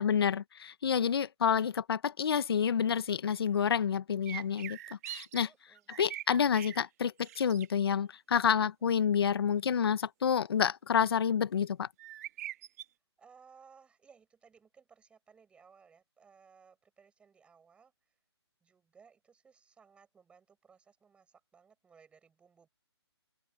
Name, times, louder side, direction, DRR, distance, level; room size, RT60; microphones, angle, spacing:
voice 1, 0.0-4.8 5.1-5.5 6.0-11.9, left 7 dB, 60° left, 1.1 m, -29 dB
sound 1, 4.3-5.4 5.7-6.8 7.2-7.7 12.0-12.8, right 13 dB, 35° right, 2.0 m, -43 dB
voice 2, 5.4-5.9 8.6-8.7 13.2-17.9 18.6-22.7, right 6 dB, 5° right, 8.0 m, -61 dB
open air
hypercardioid pair, 160°, 14 cm